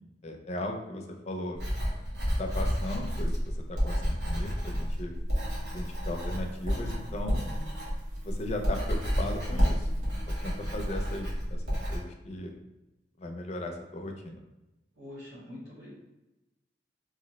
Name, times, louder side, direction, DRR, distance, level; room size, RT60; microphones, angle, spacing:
voice 1, 0.2-1.6 2.4-5.1 5.7-7.5 8.2-9.9 10.3-12.5 13.2-14.4, left 1 dB, 40° left, 3 dB, 0.4 m, -37 dB
Writing, 1.5-12.0, equal, 90° right, 0.9 m, -30 dB
sound 1, 5.3-10.9, equal, 40° right, 0.7 m, -51 dB
voice 2, 15.0-15.9, left 1 dB, 65° right, -9 dB, 1.0 m, -44 dB
2.5 x 2.0 x 3.9 m, 0.99 s
head